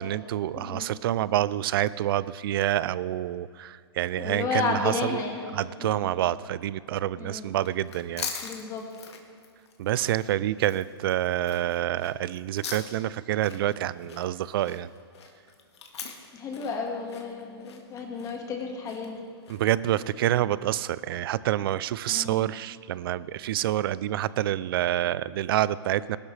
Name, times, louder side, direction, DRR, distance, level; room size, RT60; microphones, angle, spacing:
voice 1, 0.0-5.2 5.5-8.3 9.8-14.9 19.5-26.2, right 13 dB, 60° right, 19 dB, 0.4 m, -27 dB
voice 2, 0.5-0.9 4.2-6.1 7.2-7.5 8.4-8.8 16.3-19.3 22.1-22.5, left 4 dB, 25° left, 1 dB, 1.8 m, -32 dB
sound 1, 7.5-19.8, left 6 dB, 80° left, 1.8 m, -42 dB
19.5 x 12.0 x 3.3 m, 2.3 s
hypercardioid pair, 130°, 14 cm